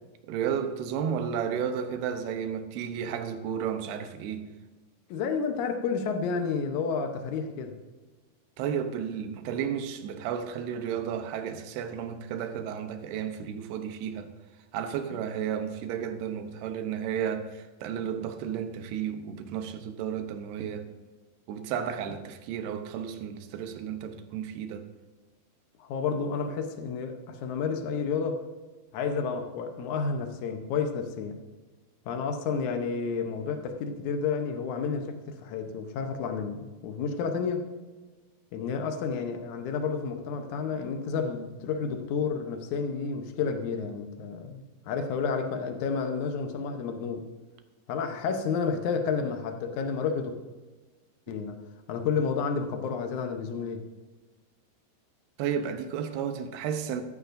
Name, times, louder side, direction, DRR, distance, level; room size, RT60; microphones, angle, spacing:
voice 1, 0.3-4.4 8.6-14.3 14.7-20.9 21.5-24.9 55.4-57.0, right 8 dB, 80° right, 2.9 m, -33 dB
voice 2, 5.1-7.7 25.8-28.4 28.9-31.4 32.0-37.6 38.5-47.2 47.9-50.3 51.3-51.6 51.9-53.8, left 5 dB, 80° left, 1.7 m, -30 dB
14.5 x 13.5 x 2.6 m
omnidirectional pair, 4.7 m